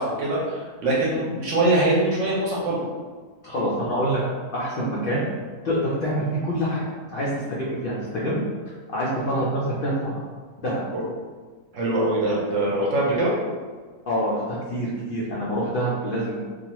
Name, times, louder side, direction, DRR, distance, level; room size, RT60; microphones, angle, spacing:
voice 1, 0.0-2.8 10.9-11.0 11.7-13.3, right 2 dB, 65° right, -5 dB, 0.9 m, -23 dB
voice 2, 3.4-4.2 4.5-5.2 5.6-6.8 7.1-7.3 7.6-8.4 8.9-10.2 10.6-10.8 14.1-16.4, equal, 85° left, -7 dB, 0.4 m, -26 dB
2.5 x 2.3 x 2.9 m, 1.5 s
omnidirectional pair, 1.6 m